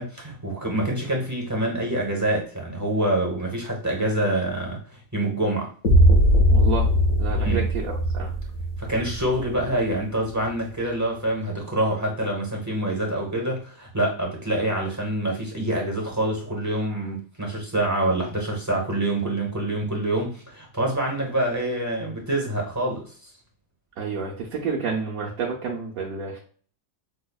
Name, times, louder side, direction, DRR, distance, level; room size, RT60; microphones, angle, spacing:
voice 1, 0.0-5.7 7.4-7.7 8.8-23.1, right 1 dB, 20° right, -1 dB, 0.6 m, -26 dB
sound 1, 5.8-9.8, equal, 60° left, 1.0 m, -20 dB
voice 2, 6.5-6.9 7.2-8.3 24.0-26.4, right 5 dB, 75° right, -3 dB, 1.1 m, -29 dB
5.6 x 2.1 x 2.2 m, 0.44 s
omnidirectional pair, 1.5 m